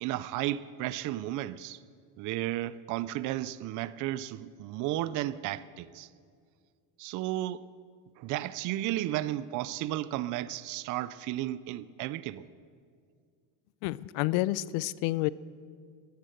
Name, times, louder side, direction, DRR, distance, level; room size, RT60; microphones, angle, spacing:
voice 1, 0.0-1.8 2.2-6.1 7.0-7.7 8.2-12.5, right 14 dB, 45° right, 0.4 m, -33 dB
voice 2, 13.8-15.3, left 17 dB, 90° left, 0.6 m, -29 dB
17.5 x 10.5 x 7.7 m
cardioid pair, 150°, 43 cm